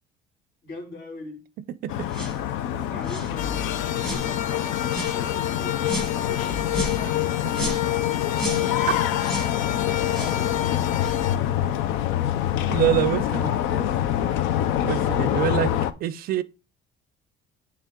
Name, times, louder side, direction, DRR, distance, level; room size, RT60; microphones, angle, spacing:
voice 1, 0.6-1.5 2.7-3.7 4.0-7.4 9.8-10.7 12.9-14.0, left 1 dB, 65° left, 2.9 m, -40 dB
sound 1, 1.9-15.9, left 11 dB, 90° left, 0.6 m, -26 dB
sound 2, 2.1-2.4 3.0-3.3 4.0-4.3 4.9-5.2 5.8-6.1 6.7-7.0 7.5-7.9 8.3-8.7 9.2-9.5 10.1-10.4 11.0-11.2, right 1 dB, 5° left, 1.1 m, -33 dB
sound 3, 3.4-11.4, left 12 dB, 40° left, 0.4 m, -29 dB
voice 2, 12.7-13.5 14.8-16.4, right 12 dB, 50° right, 0.4 m, -25 dB
9.2 x 3.3 x 3.7 m
cardioid pair, 160°, 20 cm